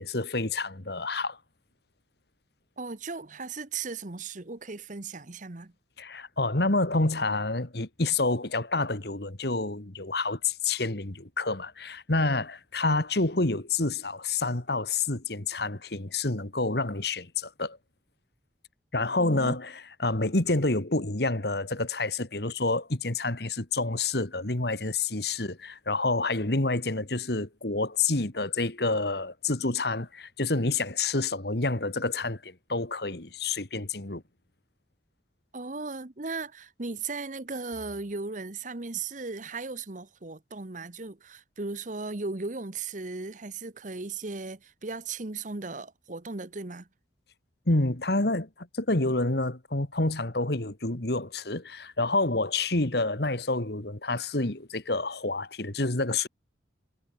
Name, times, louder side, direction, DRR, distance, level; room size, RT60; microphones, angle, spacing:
voice 1, 0.0-1.4 6.0-17.8 18.9-34.2 47.7-56.3, left 3 dB, 60° left, 2.0 m, -28 dB
voice 2, 2.8-5.7 19.2-19.6 35.5-46.9, right 3 dB, 40° right, 1.0 m, -37 dB
head